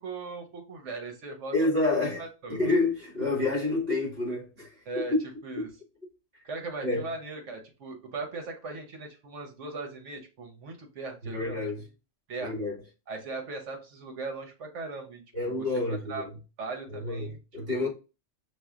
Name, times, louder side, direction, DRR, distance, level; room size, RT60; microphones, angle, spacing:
voice 1, 0.0-1.5 2.2-2.7 4.9-5.1 5.4-5.7 6.4-11.6 12.3-12.6 13.1-16.2 16.6-17.4 17.7-17.9, right 3 dB, 90° right, 1.3 m, -39 dB
voice 2, 1.5-2.2 2.5-5.2 6.8-7.1 11.2-11.9 12.4-12.8 15.3-16.3 16.9-17.9, left 2 dB, 55° right, 2.0 m, -28 dB
6.1 x 2.5 x 2.4 m
omnidirectional pair, 1.2 m